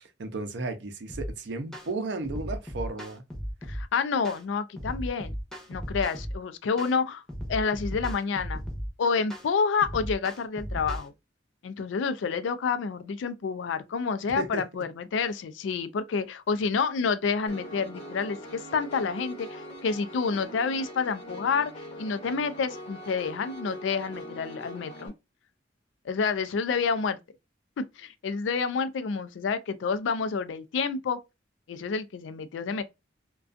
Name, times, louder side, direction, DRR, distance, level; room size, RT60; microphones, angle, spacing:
voice 1, 0.2-3.2 14.4-14.6, right 3 dB, 65° right, 0.5 m, -34 dB
sound 1, 1.1-1.3 1.7-1.9 2.2-3.8 4.2-4.4 4.8-6.4 6.8-7.0 7.3-8.9 9.3-9.5 9.8-11.1, equal, 5° left, 0.7 m, -35 dB
voice 2, 3.6-5.3 5.7-7.2 7.5-8.6 9.0-11.1 11.6-25.1 26.0-27.2 27.8-31.2 31.7-32.8, left 5 dB, 80° left, 0.4 m, -29 dB
Piano, 17.5-25.1, equal, 35° left, 0.8 m, -42 dB
2.4 x 2.2 x 2.3 m
head